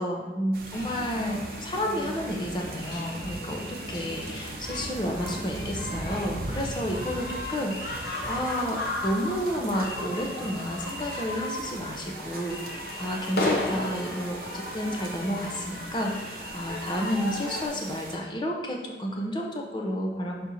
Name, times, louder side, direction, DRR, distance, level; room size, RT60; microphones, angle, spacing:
voice 1, 0.0-20.5, equal, 25° left, 1 dB, 0.8 m, -31 dB
sound 1, 0.5-18.2, right 2 dB, 55° right, 0.7 m, -41 dB
sound 2, 0.7-17.7, left 1 dB, 60° left, 1.1 m, -35 dB
6.2 x 4.3 x 4.1 m, 1.4 s
head